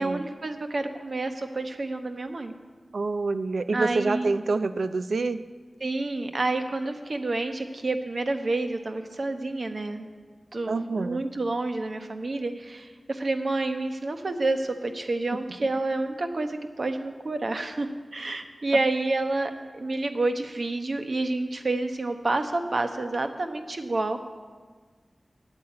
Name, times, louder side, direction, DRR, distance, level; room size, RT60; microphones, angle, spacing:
voice 1, 0.0-2.5 3.7-4.3 5.8-10.1 10.5-24.2, right 2 dB, 60° right, 6 dB, 1.0 m, -29 dB
voice 2, 2.9-5.4 10.7-11.2, right 3 dB, 90° right, 11 dB, 0.4 m, -27 dB
9.0 x 8.6 x 8.5 m, 1.5 s
wide cardioid pair, 60°, 0 cm